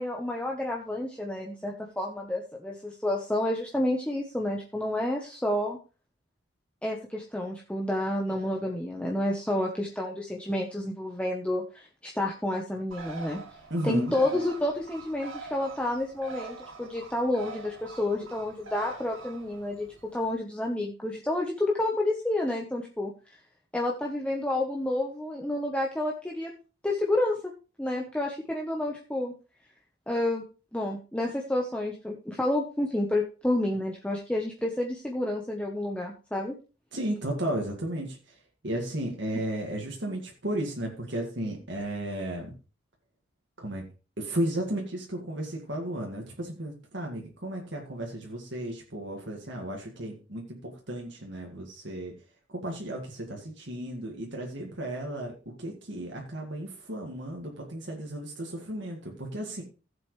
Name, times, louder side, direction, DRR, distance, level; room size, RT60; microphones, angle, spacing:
voice 1, 0.0-5.8 6.8-13.4 13.8-19.9 20.1-23.1 23.7-26.5 26.8-27.4 27.8-29.3 30.1-30.4 30.7-36.5, left 1 dB, 5° left, -1 dB, 1.0 m, -30 dB
Bird, 12.9-20.3, right 4 dB, 90° right, 2.2 m, -44 dB
voice 2, 13.7-14.1 36.9-38.2 38.6-42.5 43.6-43.8 44.2-52.1 52.6-59.6, right 1 dB, 65° right, 0 dB, 2.0 m, -34 dB
15.5 x 7.6 x 3.2 m, 0.35 s
head